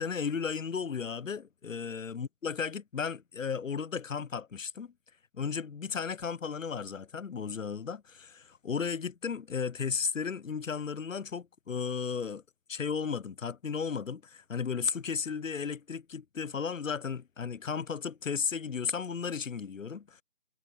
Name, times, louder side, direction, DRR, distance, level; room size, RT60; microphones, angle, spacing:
voice 1, 0.0-4.9 5.3-12.4 12.7-20.2, left 6 dB, 85° left, 0.8 m, -34 dB
figure-of-eight pair, 175°, 38 cm